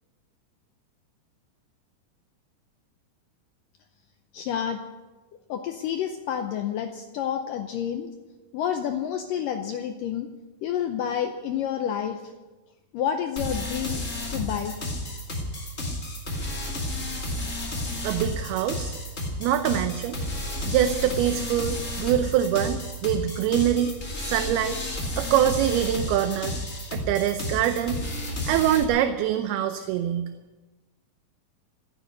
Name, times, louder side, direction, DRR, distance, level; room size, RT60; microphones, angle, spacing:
voice 1, 4.3-4.8 5.5-8.1 8.5-10.3 10.6-12.3 12.9-14.0 14.3-14.8, left 9 dB, 75° left, 6 dB, 2.0 m, -29 dB
sound 1, 13.4-28.8, left 1 dB, 25° left, 1.9 m, -32 dB
voice 2, 18.0-18.9 19.4-20.2 20.7-23.9 24.2-24.8 25.2-26.5 26.9-28.0 28.5-30.3, right 10 dB, 80° right, 9 dB, 2.6 m, -24 dB
15.5 x 9.2 x 9.6 m, 1.2 s
omnidirectional pair, 4.7 m